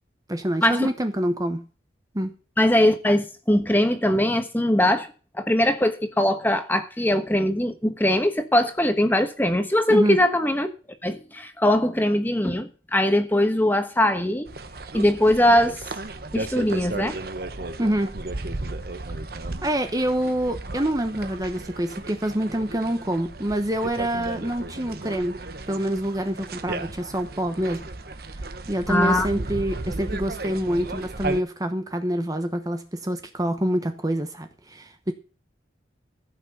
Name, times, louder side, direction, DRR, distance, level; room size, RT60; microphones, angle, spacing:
voice 1, 0.3-1.7 2.1-2.3 9.9-10.2 17.8-18.1 19.6-25.3 25.7-27.8 28.7-35.1, right 1 dB, 20° right, 1.0 m, -26 dB
voice 2, 2.6-5.1 5.3-10.7 11.0-14.5 14.9-15.8 16.3-17.2 28.9-29.3, left 1 dB, 10° left, 1.2 m, -21 dB
sound 1, 14.5-31.4, right 2 dB, 50° right, 1.1 m, -35 dB
15.0 x 6.1 x 7.0 m
head